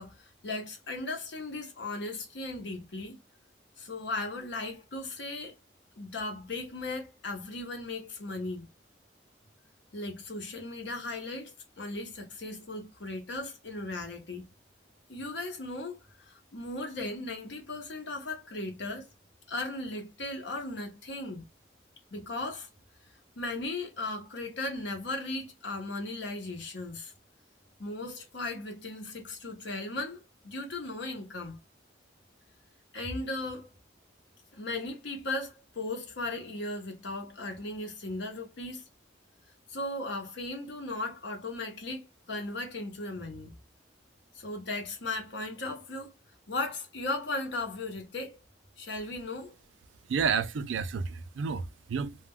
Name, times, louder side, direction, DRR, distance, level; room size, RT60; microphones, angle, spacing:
voice 1, 0.0-3.2 3.8-5.6 6.0-8.7 9.9-14.4 15.1-19.1 19.5-21.4 22.1-22.7 23.4-27.1 27.8-31.6 32.9-33.7 34.5-38.8 39.7-43.5 44.3-46.1 46.5-48.4 48.8-49.5, left 2 dB, 70° left, 0.8 m, -37 dB
voice 2, 50.1-52.2, right 6 dB, 80° right, 0.4 m, -30 dB
2.3 x 2.1 x 3.4 m
head